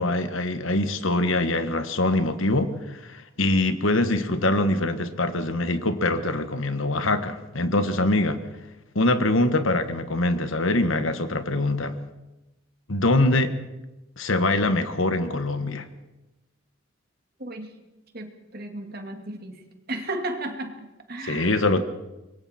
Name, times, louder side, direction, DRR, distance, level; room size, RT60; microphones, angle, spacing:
voice 1, 0.0-8.4 8.9-11.9 12.9-13.5 14.2-15.9 21.2-21.8, left 2 dB, 75° left, 10 dB, 1.5 m, -23 dB
voice 2, 17.4-17.7 18.1-19.6 19.9-21.7, right 2 dB, 45° right, 5 dB, 2.2 m, -34 dB
26.0 x 23.0 x 4.4 m, 1.0 s
head